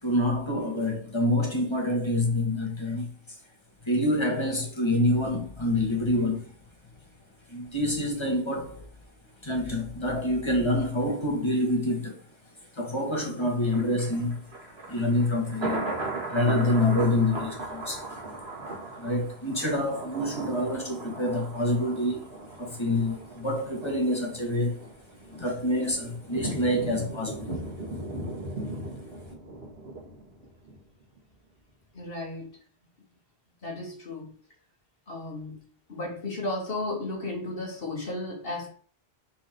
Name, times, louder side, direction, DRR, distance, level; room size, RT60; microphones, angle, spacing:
voice 1, 0.0-3.4 3.8-6.6 7.5-8.9 9.4-12.2 12.7-14.5 14.9-15.9 16.3-18.2 18.9-24.9 25.3-27.7, left 1 dB, 25° left, 1.9 m, -27 dB
Thunder, 13.7-30.8 31.2-31.3, right 2 dB, 80° right, 2.1 m, -38 dB
voice 2, 31.9-32.5 33.6-34.4 35.1-35.6 35.9-38.7, left 2 dB, 65° left, 1.6 m, -34 dB
6.0 x 4.4 x 4.6 m
omnidirectional pair, 1.1 m